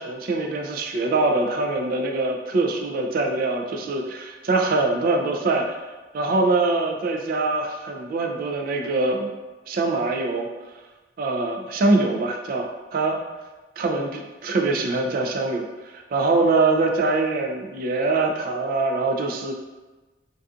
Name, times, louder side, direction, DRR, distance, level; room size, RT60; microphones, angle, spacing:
voice 1, 0.0-5.8 6.1-9.3 9.7-10.5 11.2-13.2 13.8-19.5, right 3 dB, 50° right, 2 dB, 0.3 m, -23 dB
2.5 x 2.4 x 2.3 m, 1.2 s
head